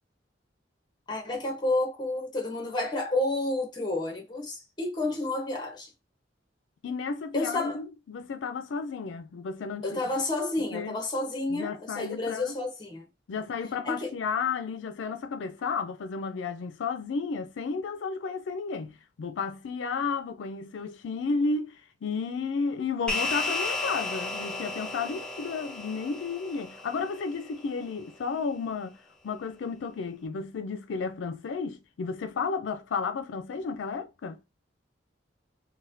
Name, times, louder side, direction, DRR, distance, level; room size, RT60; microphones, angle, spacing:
voice 1, 1.1-5.9 7.3-7.8 9.8-13.1 13.8-14.1, left 2 dB, 25° left, 1.0 m, -30 dB
voice 2, 6.8-10.0 10.6-11.0 11.5-12.5 13.3-29.0 29.2-34.4, left 5 dB, 90° left, 0.4 m, -32 dB
sound 1, 23.1-27.7, left 2 dB, 5° left, 0.6 m, -33 dB
4.0 x 2.2 x 2.6 m
head